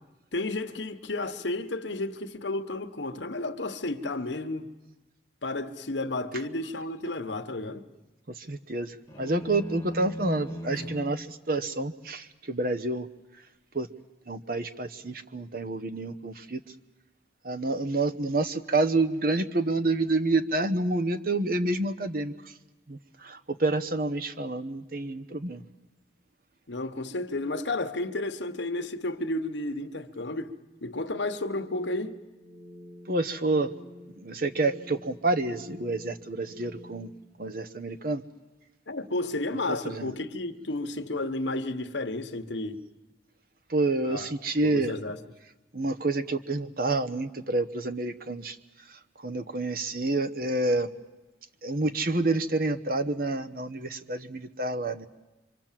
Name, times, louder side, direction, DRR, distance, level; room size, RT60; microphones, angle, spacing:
voice 1, 0.3-4.7 5.4-7.9 10.7-10.9 26.7-32.2 38.9-42.8 44.0-44.3 44.6-45.2, left 2 dB, 75° left, 1.2 m, -32 dB
voice 2, 8.3-13.1 13.7-13.9 14.3-16.6 17.4-22.3 22.9-25.6 33.1-33.7 34.2-37.1 37.4-38.2 39.7-40.1 43.7-44.9 45.7-48.6 48.9-50.9 51.6-55.1, right 2 dB, 50° right, 1.0 m, -28 dB
sound 1, 9.1-11.3, equal, 15° left, 1.7 m, -38 dB
sound 2, 31.5-37.1, left 1 dB, 15° right, 2.7 m, -49 dB
25.5 x 25.0 x 7.5 m
head